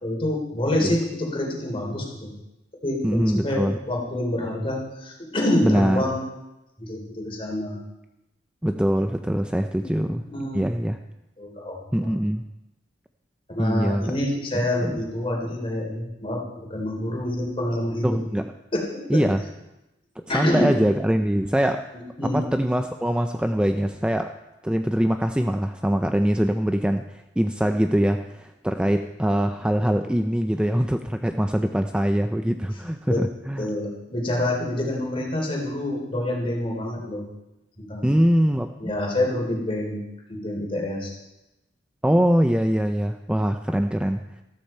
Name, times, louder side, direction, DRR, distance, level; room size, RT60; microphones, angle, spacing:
voice 1, 0.0-2.3 2.8-6.2 6.8-7.8 9.8-9.9 10.3-10.6 11.4-12.1 13.5-18.2 18.7-18.8 19.1-19.2 20.3-20.7 22.2-22.4 32.7-32.8 33.1-33.2 33.6-37.2 37.8-38.1 38.8-40.0 40.3-41.1, left 1 dB, 30° left, -1 dB, 3.5 m, -27 dB
voice 2, 3.0-3.8 5.6-6.0 8.6-10.2 10.5-11.0 11.9-12.4 13.6-14.1 14.8-15.0 18.0-18.5 19.1-19.4 20.2-21.8 22.3-24.3 24.6-27.1 27.4-33.7 38.0-38.9 42.0-44.3, equal, 5° right, 7 dB, 0.4 m, -23 dB
13.5 x 13.5 x 4.4 m, 0.96 s
head